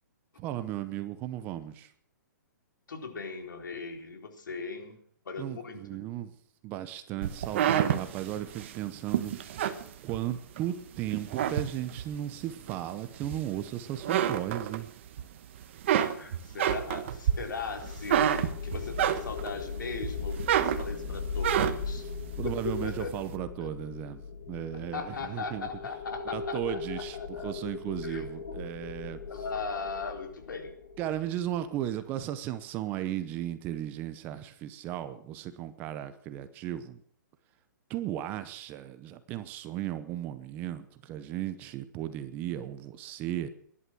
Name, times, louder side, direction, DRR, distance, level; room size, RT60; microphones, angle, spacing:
voice 1, 0.4-1.9 5.4-6.3 6.6-9.3 10.0-14.9 22.0-22.1 22.4-24.2 24.5-25.7 26.3-29.2 31.0-37.0 37.9-43.5, right 12 dB, 15° right, 12 dB, 0.8 m, -35 dB
voice 2, 2.9-5.0 5.3-6.0 16.0-18.3 18.6-22.0 22.4-23.1 23.6-23.7 24.7-27.6 28.0-28.6 29.3-30.7, left 4 dB, 85° left, 4 dB, 4.2 m, -38 dB
sound 1, 7.2-10.6 11.1-12.2 12.7-13.7 14.0-15.2 15.6-19.6 20.0-22.0, right 10 dB, 40° right, 1.2 m, -28 dB
sound 2, 16.9-32.1, left 4 dB, 50° left, 2.7 m, -39 dB
19.5 x 11.5 x 6.2 m, 0.64 s
hypercardioid pair, 170°, 10 cm